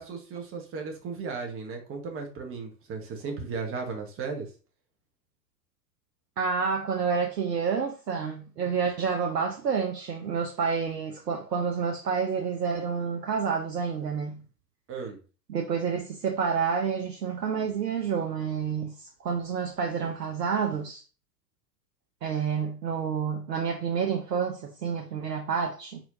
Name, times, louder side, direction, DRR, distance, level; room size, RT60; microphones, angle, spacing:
voice 1, 0.0-4.5 14.9-15.2, right 4 dB, 25° right, 1.3 m, -35 dB
voice 2, 6.4-14.4 15.5-21.0 22.2-26.0, right 6 dB, 75° right, 0.9 m, -29 dB
4.4 x 4.4 x 2.6 m
figure-of-eight pair, 95°, 49 cm